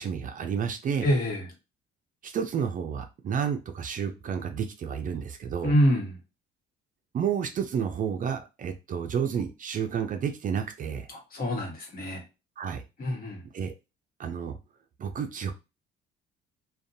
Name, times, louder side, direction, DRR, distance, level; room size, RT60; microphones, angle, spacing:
voice 1, 0.0-1.1 2.2-5.7 7.1-11.1 12.6-12.8 13.5-13.7 14.2-14.6 15.0-15.5, right 7 dB, 40° right, 6 dB, 0.4 m, -30 dB
voice 2, 1.0-1.5 5.6-6.2 11.1-12.2 13.0-13.4, equal, 45° left, 1 dB, 1.2 m, -26 dB
2.5 x 2.2 x 2.6 m, 0.27 s
cardioid pair, 100°, 21 cm